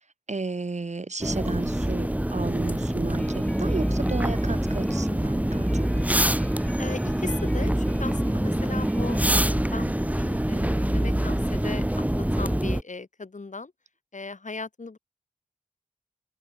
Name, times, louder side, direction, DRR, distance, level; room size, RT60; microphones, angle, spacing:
voice 1, 0.3-5.8, right 3 dB, 55° right, 2.4 m, -33 dB
sound 1, 1.2-12.8, right 1 dB, 10° right, 1.8 m, -25 dB
sound 2, 3.2-9.5, equal, 5° left, 1.8 m, -40 dB
voice 2, 6.8-13.7 14.1-15.0, left 3 dB, 60° left, 5.1 m, -38 dB
open air
cardioid pair, 40°, 14 cm